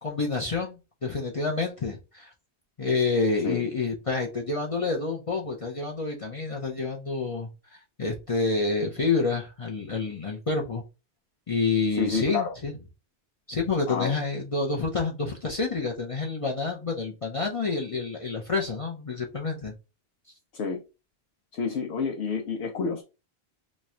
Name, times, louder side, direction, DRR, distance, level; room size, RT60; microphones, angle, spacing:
voice 1, 0.0-2.3 2.8-7.5 8.0-10.8 11.5-12.7 13.5-19.7, left 4 dB, 40° left, 0.6 m, -28 dB
voice 2, 11.9-12.5 13.9-14.1 20.5-20.8 21.5-23.0, left 5 dB, 80° left, 0.9 m, -29 dB
3.1 x 2.5 x 4.2 m
omnidirectional pair, 1.1 m